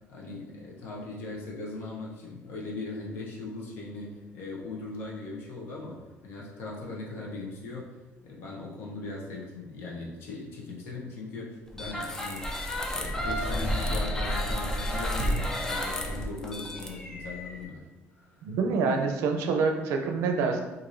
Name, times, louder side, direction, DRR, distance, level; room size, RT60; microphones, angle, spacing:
voice 1, 0.1-8.0 8.2-12.5 12.9-17.8 18.2-18.5, left 2 dB, 55° left, -3 dB, 0.8 m, -39 dB
sound 1, 11.7-17.6, equal, 10° left, 0.3 m, -31 dB
voice 2, 18.4-20.6, right 4 dB, 75° right, 4 dB, 0.5 m, -26 dB
4.6 x 2.6 x 2.6 m, 1.1 s
cardioid pair, 170°, 5 cm